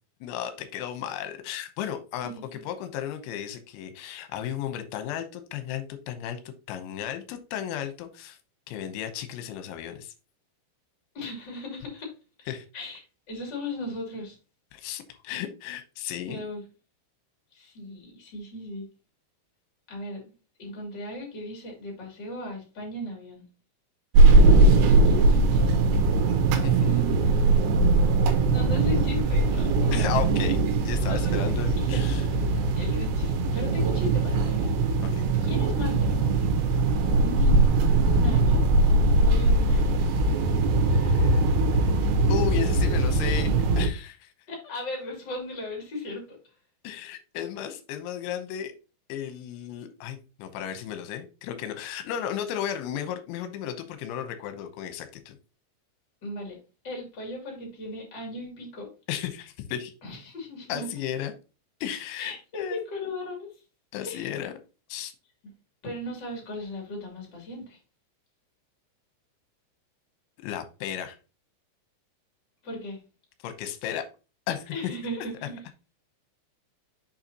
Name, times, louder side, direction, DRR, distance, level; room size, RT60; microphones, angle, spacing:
voice 1, 0.2-6.4 6.7-8.4 8.7-10.1 12.5-12.7 14.7-16.5 26.6-27.1 29.9-32.6 35.0-35.3 40.9-41.4 42.3-44.3 46.8-48.7 49.1-55.4 59.1-59.9 60.7-61.3 61.8-62.8 63.9-64.5 64.9-65.1 70.4-71.2 73.4-74.1 74.5-74.7 75.2-75.3, left 10 dB, 75° left, 8 dB, 3.0 m, -34 dB
voice 2, 11.1-12.1 12.4-12.5 12.7-13.0 13.3-14.4 16.3-16.6 17.5-18.8 19.9-20.2 20.6-23.4 24.2-25.7 26.8-27.7 28.5-30.1 31.1-31.4 31.8-32.0 32.8-35.0 35.4-36.5 37.1-40.0 44.5-46.4 56.2-56.6 56.8-58.9 60.0-60.9 62.2-63.6 64.0-64.3 65.8-67.8 72.6-73.0 74.7-75.6, left 1 dB, 35° left, -1 dB, 2.0 m, -37 dB
sound 1, 24.2-43.9, right 2 dB, 85° right, 3.4 m, -21 dB
7.0 x 5.6 x 2.9 m, 0.32 s
omnidirectional pair, 5.9 m